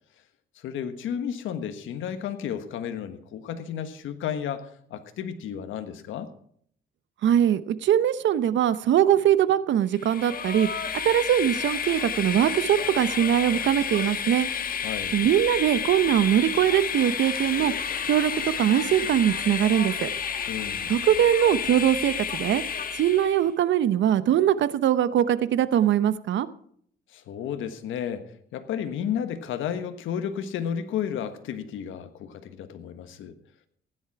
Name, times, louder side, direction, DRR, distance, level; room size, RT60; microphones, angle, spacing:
voice 1, 0.5-6.3 14.8-15.1 20.5-20.9 27.1-33.4, left 8 dB, 80° left, 9 dB, 1.4 m, -32 dB
voice 2, 7.2-10.7 11.0-14.5 15.1-17.7 18.0-18.3 18.6-20.1 20.9-22.6 22.9-26.5, right 10 dB, 70° right, 14 dB, 0.8 m, -22 dB
Train, 9.9-23.4, left 7 dB, 45° left, 1.4 m, -31 dB
15.5 x 10.5 x 4.7 m, 0.62 s
cardioid pair, 90°, 20 cm